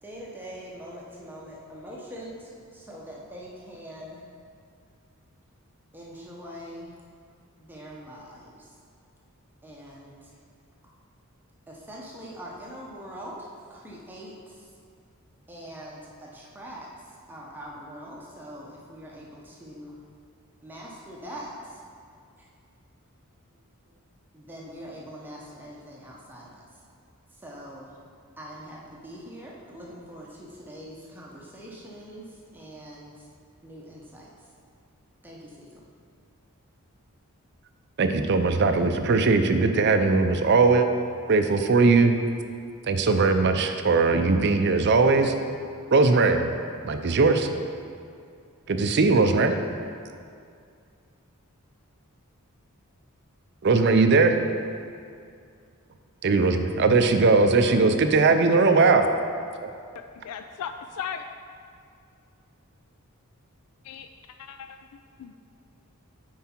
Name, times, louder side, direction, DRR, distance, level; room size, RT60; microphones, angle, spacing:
voice 1, 0.0-4.2 5.9-6.9 7.6-8.7 9.6-10.4 11.7-14.7 15.5-20.0 20.6-21.8 22.4-22.5 24.3-26.8 27.3-28.0 28.4-33.3 33.6-34.5 35.2-35.8, equal, 10° right, -4 dB, 0.8 m, -43 dB
voice 2, 38.0-40.9 41.3-42.2 42.8-45.3 45.9-46.5 46.8-47.5 48.7-49.6 53.6-54.4 56.2-59.1, right 3 dB, 50° right, 7 dB, 0.5 m, -20 dB
voice 3, 59.9-61.3 63.8-64.1 64.4-64.8 65.2-65.4, left 7 dB, 85° left, 8 dB, 0.3 m, -37 dB
9.5 x 4.7 x 4.4 m, 2.3 s
head